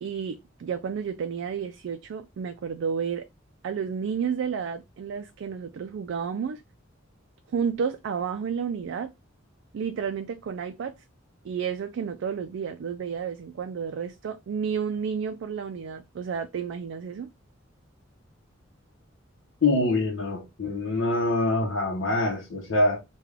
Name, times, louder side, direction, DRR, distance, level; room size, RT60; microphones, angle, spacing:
voice 1, 0.0-3.2 3.6-6.6 7.5-9.1 9.7-10.9 11.4-17.3, right 6 dB, 65° right, 0.3 m, -31 dB
voice 2, 19.6-23.0, left 2 dB, 85° left, 0.7 m, -25 dB
3.3 x 2.2 x 3.5 m
head